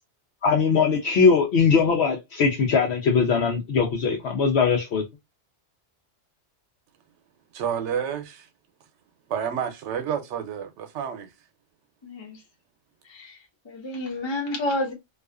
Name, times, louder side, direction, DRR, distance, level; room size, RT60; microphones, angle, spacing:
voice 1, 0.4-5.0, left 5 dB, 70° left, 0.8 m, -21 dB
voice 2, 7.5-8.5 9.3-11.3, right 8 dB, 85° right, 0.9 m, -29 dB
voice 3, 12.0-12.4 13.1-13.4 13.6-14.9, left 1 dB, 25° left, 0.8 m, -29 dB
2.4 x 2.4 x 2.2 m
omnidirectional pair, 1.2 m